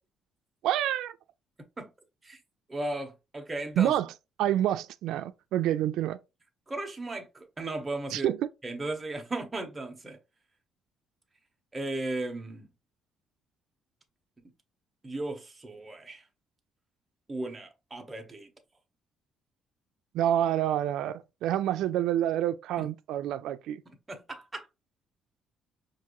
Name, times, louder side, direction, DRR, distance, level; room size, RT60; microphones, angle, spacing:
voice 1, 0.6-1.2 3.8-4.1 4.4-6.2 8.1-8.5 20.1-23.8, right 12 dB, 85° right, 0.3 m, -27 dB
voice 2, 2.7-3.9 6.7-8.3 8.6-10.2 11.7-12.7 15.0-16.2 17.3-18.5 22.8-22.9 24.1-24.7, right 2 dB, 15° right, 0.9 m, -36 dB
5.8 x 2.5 x 3.0 m
cardioid pair, 150°, 0 cm